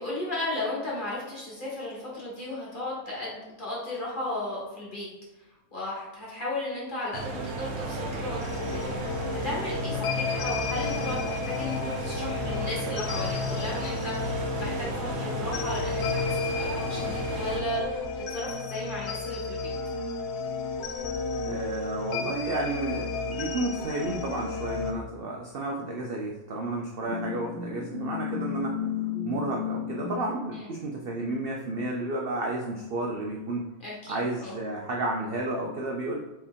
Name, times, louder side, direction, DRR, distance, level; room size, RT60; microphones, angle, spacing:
voice 1, 0.0-5.1 5.7-19.7 30.5-30.7 33.8-34.5, left 1 dB, 35° left, -5 dB, 1.3 m, -35 dB
sound 1, 7.1-17.6, right 3 dB, 60° right, 0.8 m, -34 dB
sound 2, 8.4-24.9, left 4 dB, 70° left, 0.6 m, -32 dB
voice 2, 21.4-28.8 29.2-33.6 34.1-36.2, right 2 dB, 80° right, 0 dB, 0.5 m, -32 dB
sound 3, 27.0-30.3, left 7 dB, 40° right, 1.1 m, -33 dB
4.4 x 3.3 x 3.6 m, 1.1 s
omnidirectional pair, 1.6 m